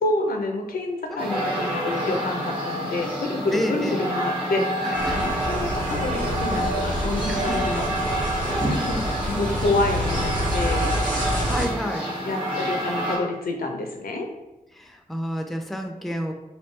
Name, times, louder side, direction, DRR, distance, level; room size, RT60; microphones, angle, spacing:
voice 1, 0.0-8.3 8.6-9.0 9.3-11.0 12.2-14.3, left 2 dB, 85° left, 3 dB, 0.5 m, -28 dB
sound 1, 1.2-13.2, equal, 35° right, 1.1 m, -28 dB
voice 2, 3.5-4.0 4.8-5.2 7.3-7.6 8.5-8.9 11.2-12.1 14.7-16.3, equal, ahead, 4 dB, 0.4 m, -30 dB
sound 2, 4.9-11.7, equal, 70° right, 0.9 m, -27 dB
3.1 x 2.6 x 3.2 m, 0.99 s
cardioid pair, 55°, 15 cm